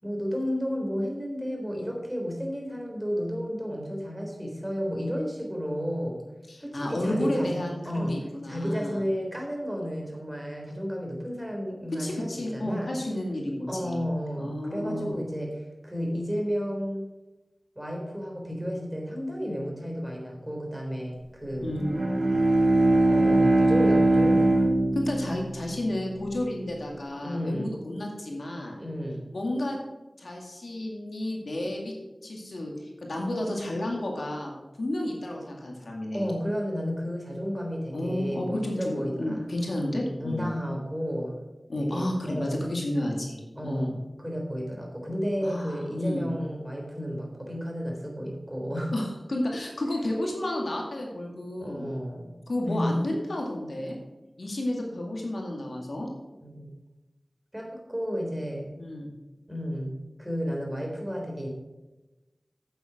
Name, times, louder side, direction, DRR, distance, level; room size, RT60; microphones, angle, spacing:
voice 1, 0.0-6.2 6.6-8.2 8.4-12.3 12.5-12.9 13.7-17.0 17.8-21.7 23.1-24.5 27.2-27.7 28.8-29.2 36.1-39.4 40.2-41.4 41.9-42.6 43.6-48.9 51.6-52.3 52.7-53.0 56.4-56.7 57.5-58.8 59.5-61.5, equal, 15° right, 0 dB, 3.6 m, -32 dB
voice 2, 6.5-9.0 12.0-14.0 14.4-15.1 21.6-21.9 24.9-28.8 29.3-29.8 30.2-31.9 32.2-36.3 37.9-40.5 41.7-44.0 45.4-46.3 48.9-51.9 52.5-54.0 54.4-56.1 58.8-59.1, left 1 dB, 80° left, 0 dB, 2.1 m, -31 dB
Bowed string instrument, 21.7-26.3, right 2 dB, 75° right, 2.2 m, -22 dB
8.6 x 7.8 x 5.9 m, 1.1 s
wide cardioid pair, 40°, 0 cm